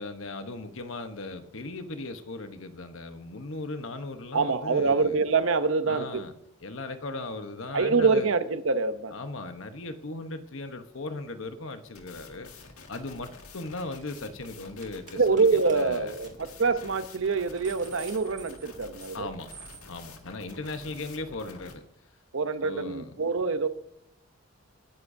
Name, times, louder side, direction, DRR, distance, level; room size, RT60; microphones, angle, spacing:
voice 1, 0.0-5.2 5.8-6.3 6.6-8.3 9.1-12.5 12.9-16.2 19.1-19.5 19.9-21.8 22.6-23.1, left 2 dB, 65° left, 8 dB, 1.0 m, -38 dB
voice 2, 4.3-6.2 7.7-9.1 15.1-19.3 22.3-23.7, right 4 dB, 65° right, 11 dB, 0.7 m, -25 dB
sound 1, 11.9-21.7, left 4 dB, 85° left, 1.9 m, -48 dB
sound 2, 13.4-13.6 13.9-14.2 14.8-15.4 15.7-15.8 16.2-16.3 16.7-16.8 17.3-19.2 19.5-19.8, right 6 dB, 35° right, 1.7 m, -49 dB
18.5 x 9.8 x 2.7 m, 0.74 s
head